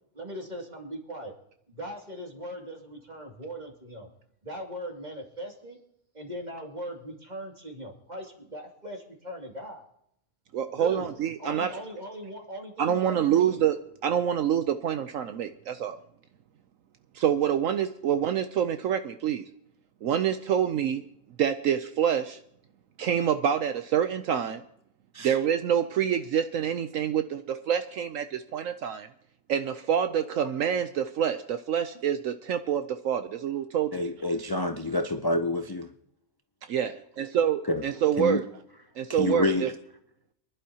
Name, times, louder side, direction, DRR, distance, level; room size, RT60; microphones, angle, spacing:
voice 1, 0.1-1.3 1.7-4.1 4.4-5.8 6.1-9.8 10.7-11.1 11.4-13.6, equal, 30° right, 2.6 m, -39 dB
voice 2, 10.5-11.7 12.8-13.8 14.0-16.0 17.1-19.4 20.0-21.0 21.4-22.4 23.0-24.6 25.2-29.1 29.5-33.9 36.7-38.5 39.0-39.7, right 9 dB, 70° right, 1.0 m, -26 dB
voice 3, 33.9-35.9 37.7-37.8 38.2-38.4 39.1-39.7, left 2 dB, 35° left, 0.3 m, -27 dB
25.5 x 11.0 x 2.9 m
omnidirectional pair, 1.5 m